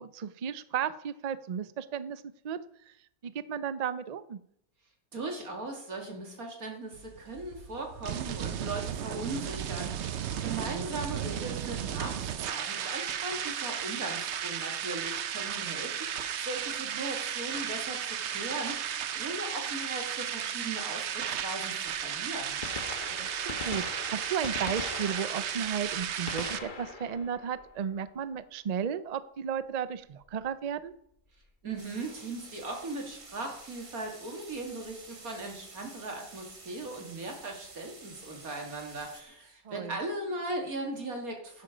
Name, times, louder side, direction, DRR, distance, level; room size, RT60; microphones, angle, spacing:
voice 1, 0.0-2.6 2.9-3.0 3.2-4.4 10.4-10.9 16.9-17.1 23.2-30.9 39.6-40.0, right 8 dB, 90° right, 14 dB, 0.3 m, -34 dB
voice 2, 5.1-22.7 31.6-41.6, right 2 dB, 70° right, 2 dB, 2.9 m, -38 dB
sound 1, 6.9-26.6, right 9 dB, 55° right, 0.9 m, -34 dB
Gunshot gunfire, 21.9-22.0 22.5-28.3 30.3-30.4 31.4-31.5 33.1-33.2 34.6-34.7 34.9-35.0, left 4 dB, 35° left, 1.3 m, -41 dB
sound 2, 31.8-39.2, right 3 dB, 25° right, 1.1 m, -50 dB
11.5 x 10.0 x 5.0 m, 0.72 s
omnidirectional pair, 1.6 m